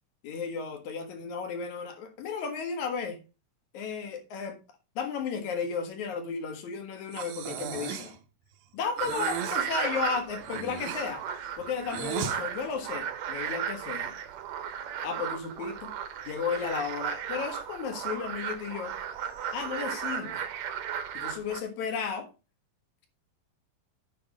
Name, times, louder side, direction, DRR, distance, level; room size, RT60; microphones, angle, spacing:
voice 1, 0.2-3.2 3.7-4.6 5.0-8.2 8.7-11.2 11.6-14.2 15.0-15.9 16.3-19.0 19.5-20.5 21.1-22.3, left 6 dB, 60° left, 2.7 m, -34 dB
Breathing, 7.1-8.2 9.0-9.6 10.4-12.4, right 9 dB, 85° right, 2.7 m, -36 dB
sound 1, 9.0-21.6, right 8 dB, 65° right, 1.9 m, -35 dB
9.3 x 4.8 x 5.0 m
omnidirectional pair, 4.0 m